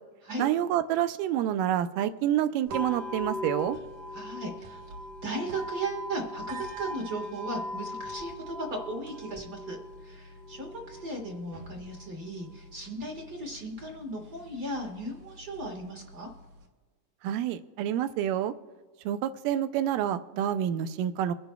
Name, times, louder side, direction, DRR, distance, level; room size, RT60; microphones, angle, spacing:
voice 1, 0.4-3.8 17.2-18.5 19.1-21.3, right 11 dB, 90° right, 11 dB, 2.2 m, -28 dB
sound 1, 2.7-16.7, left 1 dB, 70° right, 2.6 m, -41 dB
voice 2, 4.1-4.8 5.2-9.8 10.0-16.3, right 1 dB, 40° right, 2 dB, 1.4 m, -36 dB
24.0 x 11.0 x 2.3 m, 1.4 s
omnidirectional pair, 3.7 m